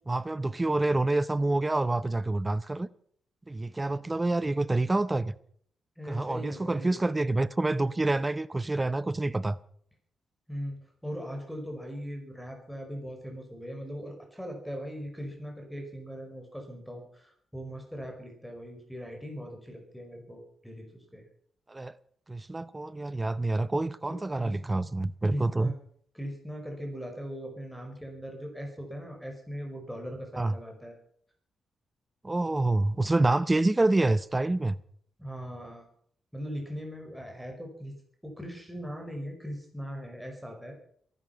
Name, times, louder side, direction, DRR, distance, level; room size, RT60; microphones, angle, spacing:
voice 1, 0.1-2.9 3.5-5.3 6.1-9.6 21.7-22.0 22.3-25.7 30.4-30.6 32.2-34.8, right 2 dB, 20° right, 0.7 m, -27 dB
voice 2, 6.0-7.0 10.5-21.2 24.1-24.6 25.2-25.7 26.1-30.9 35.2-35.9 36.3-37.9 38.2-40.8, equal, ahead, 5.1 m, -40 dB
22.0 x 11.0 x 5.8 m
cardioid pair, 80°, 0 cm